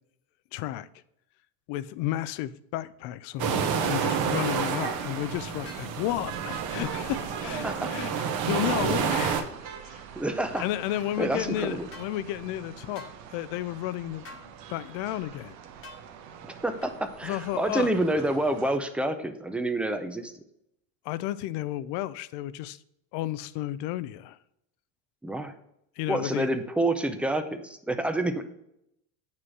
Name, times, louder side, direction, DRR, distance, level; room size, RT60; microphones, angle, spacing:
voice 1, 0.5-0.9 1.7-8.1 8.5-10.1 10.6-14.4 14.7-15.6 17.2-17.9 21.0-22.8 23.1-24.4 26.0-26.5, left 13 dB, 60° left, 0.5 m, -32 dB
sound 1, 3.4-9.4, right 6 dB, 50° right, 1.1 m, -29 dB
sound 2, 3.8-18.8, right 8 dB, 75° right, 1.1 m, -44 dB
sound 3, 5.6-5.9 10.6-10.7 11.9-12.1 12.9-13.2 14.2-14.5 15.8-16.0 16.8-17.0, left 2 dB, 25° left, 1.3 m, -46 dB
voice 2, 10.2-10.6 11.2-11.9 16.6-20.3 25.2-25.5 26.1-28.5, right 1 dB, 5° right, 0.4 m, -28 dB
8.6 x 3.2 x 6.1 m
supercardioid pair, 105°, 49 cm